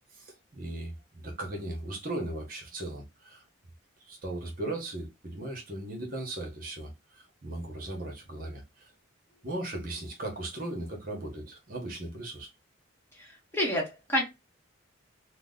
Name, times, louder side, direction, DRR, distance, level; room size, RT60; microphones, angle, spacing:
voice 1, 0.1-3.4 4.1-8.9 9.4-12.5, right 1 dB, 45° right, 1.0 m, -37 dB
voice 2, 13.1-14.2, equal, 10° left, 1.0 m, -29 dB
2.9 x 2.1 x 3.7 m
head